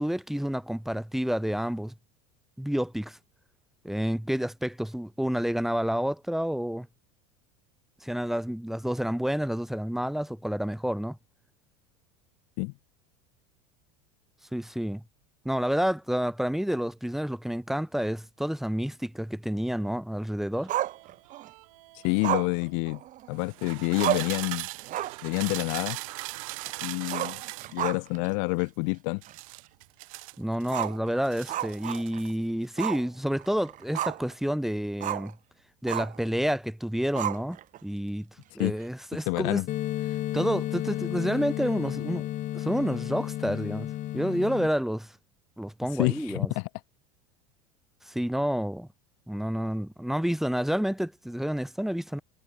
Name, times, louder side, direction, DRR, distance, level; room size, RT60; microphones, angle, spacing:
voice 1, 0.0-1.9 2.6-3.2 3.8-6.9 8.0-11.2 14.5-15.0 15.4-20.7 30.4-35.4 35.8-38.3 38.5-39.6 40.3-42.3 42.5-43.9 44.1-45.1 45.6-46.5 48.0-48.9 49.3-52.2, equal, ahead, 4.8 m, -29 dB
sound 1, 20.6-22.5 23.3-27.8 29.2-30.9 31.2-32.4 32.6-33.0, right 23 dB, 70° right, 2.2 m, -40 dB
Growling, 20.7-21.5 22.2-23.5 23.7-23.8 24.0-24.4 24.8-25.3 25.6-25.7 27.0-28.3 28.6-28.7 29.3-29.4 30.7-32.3 32.8-33.1 33.4-34.3 35.0-35.3 35.9-36.2 37.2-37.8, right 13 dB, 45° right, 6.9 m, -32 dB
voice 2, 22.0-23.0 23.3-24.7 25.2-26.0 26.8-27.4 27.7-29.2 38.6-38.7 39.3-39.7 46.0-46.7, left 40 dB or more, 65° left, 7.3 m, -28 dB
sound 2, 39.7-44.7, left 14 dB, 45° left, 1.6 m, -32 dB
hypercardioid pair, 95°, 18 cm